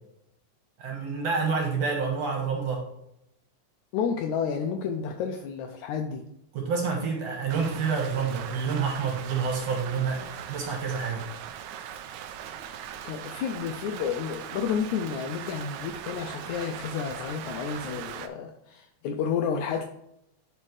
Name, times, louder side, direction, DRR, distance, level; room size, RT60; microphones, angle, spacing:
voice 1, 0.8-2.9 6.5-11.3, right 5 dB, 60° right, 1 dB, 2.1 m, -28 dB
voice 2, 3.9-6.2 13.0-19.8, left 7 dB, 80° left, 4 dB, 1.7 m, -31 dB
Rain, 7.5-18.3, right 9 dB, 90° right, 1.6 m, -40 dB
11.0 x 4.3 x 3.2 m, 0.79 s
omnidirectional pair, 3.9 m